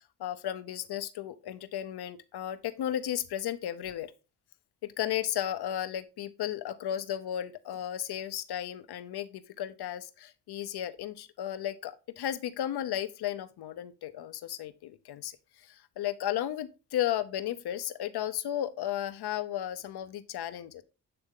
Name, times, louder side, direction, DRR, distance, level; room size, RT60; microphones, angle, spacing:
voice 1, 0.0-4.1 5.0-15.3 15.7-20.8, left 11 dB, 70° left, 0.7 m, -34 dB
7.8 x 3.5 x 3.7 m
cardioid pair, 65°, 40 cm